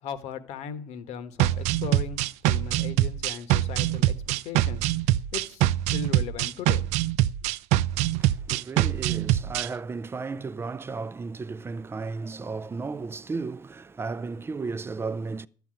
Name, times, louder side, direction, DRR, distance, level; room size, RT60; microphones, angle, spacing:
voice 1, 0.0-4.8 5.3-6.9, left 7 dB, 65° left, 1.4 m, -38 dB
sound 1, 1.4-9.7, right 14 dB, 75° right, 0.5 m, -24 dB
voice 2, 7.9-15.5, right 4 dB, 20° right, 0.6 m, -34 dB
12.5 x 5.9 x 8.9 m
supercardioid pair, 95°, 12 cm